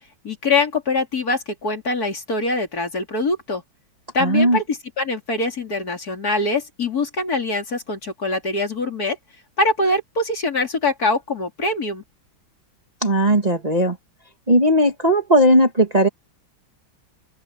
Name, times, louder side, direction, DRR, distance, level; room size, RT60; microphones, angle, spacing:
voice 1, 0.2-3.6 4.1-9.2 9.6-12.0, left 2 dB, 45° left, 3.8 m, -23 dB
voice 2, 4.2-4.6 13.0-14.0 14.5-16.1, right 1 dB, 20° right, 1.9 m, -17 dB
open air
omnidirectional pair, 2.2 m